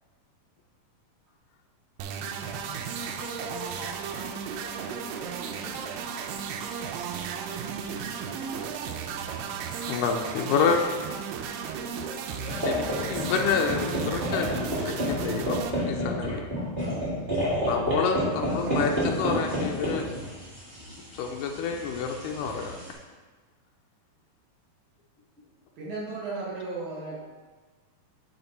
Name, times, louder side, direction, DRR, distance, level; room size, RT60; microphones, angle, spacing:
sound 1, 2.0-15.7, right 7 dB, 85° right, 2.3 m, -34 dB
voice 1, 2.6-5.8 25.4-25.5, left 2 dB, 55° left, -9 dB, 0.9 m, -45 dB
voice 2, 9.8-10.8 12.6-15.6 15.9-16.4 17.7-20.1 21.1-22.8, left 6 dB, 80° left, 2 dB, 2.0 m, -28 dB
sound 2, 12.5-22.9, equal, 25° right, 1.2 m, -30 dB
voice 3, 25.8-27.2, right 3 dB, 65° right, -7 dB, 2.4 m, -35 dB
8.4 x 4.3 x 4.0 m, 1.4 s
omnidirectional pair, 4.0 m